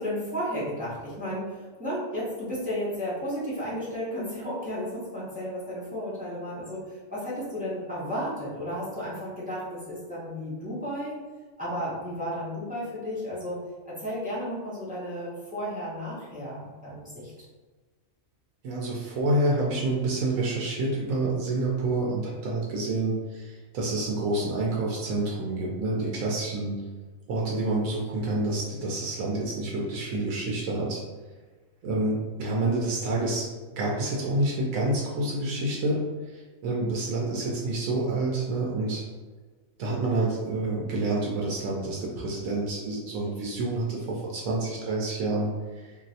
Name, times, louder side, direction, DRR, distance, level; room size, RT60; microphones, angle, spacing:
voice 1, 0.0-11.2 11.6-13.6 13.8-17.3, equal, 5° right, -9 dB, 0.8 m, -33 dB
voice 2, 18.6-26.8 27.3-31.0 31.8-33.5 33.8-39.0 39.8-45.9, right 2 dB, 80° right, -3 dB, 1.0 m, -28 dB
3.0 x 2.6 x 2.7 m, 1.4 s
omnidirectional pair, 1.4 m